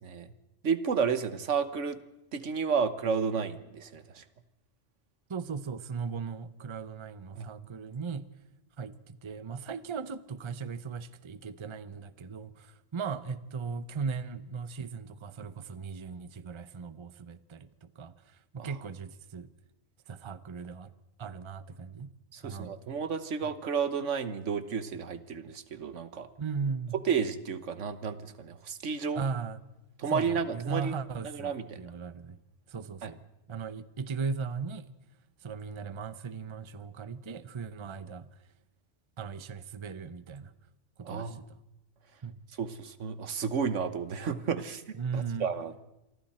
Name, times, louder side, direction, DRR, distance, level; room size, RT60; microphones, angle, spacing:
voice 1, 0.6-2.0 2.3-4.2 7.4-7.5 18.6-18.7 22.3-26.3 27.0-29.3 30.0-30.9 31.2-31.8 33.0-33.1 41.0-41.4 42.6-44.8 45.1-45.9, right 6 dB, 80° right, 1.5 m, -32 dB
voice 2, 5.3-8.3 8.8-19.5 20.1-20.9 21.2-22.1 22.4-22.8 26.4-27.0 29.1-29.6 30.1-32.4 32.7-33.2 33.5-35.0 35.4-38.3 39.2-40.5 41.0-41.6 42.2-42.4 44.9-45.5, right 5 dB, 30° right, 0.7 m, -38 dB
27.0 x 24.0 x 4.3 m
omnidirectional pair, 1.2 m